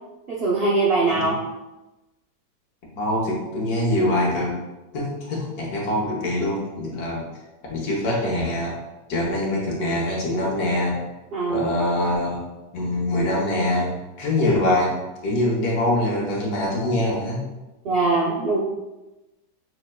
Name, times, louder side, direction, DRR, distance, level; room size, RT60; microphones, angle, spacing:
voice 1, 0.3-1.3 11.3-11.7 17.8-18.6, right 3 dB, 75° right, -5 dB, 0.5 m, -21 dB
voice 2, 2.9-4.6 4.9-7.3 7.7-8.8 9.1-11.0 11.5-12.4 12.7-15.0 15.2-17.4, left 1 dB, 70° left, -3 dB, 1.4 m, -24 dB
5.7 x 2.9 x 2.2 m, 1.1 s
omnidirectional pair, 1.8 m